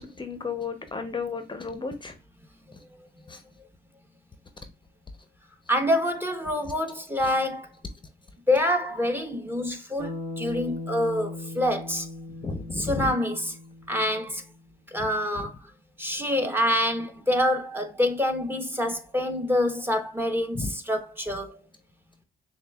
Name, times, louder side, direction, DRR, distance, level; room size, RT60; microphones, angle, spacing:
voice 1, 0.0-2.1 3.3-3.4 7.2-7.3 12.4-13.1 15.4-15.5 20.5-20.7, left 4 dB, 25° left, 0.7 m, -33 dB
voice 2, 5.7-7.7 8.5-12.1 12.7-13.5 13.9-14.4 14.9-15.5 16.0-21.6, left 1 dB, 10° right, 0.8 m, -26 dB
Bass guitar, 10.0-14.4, left 2 dB, 70° right, 1.6 m, -38 dB
6.6 x 2.3 x 2.3 m
cardioid pair, 90°, 20 cm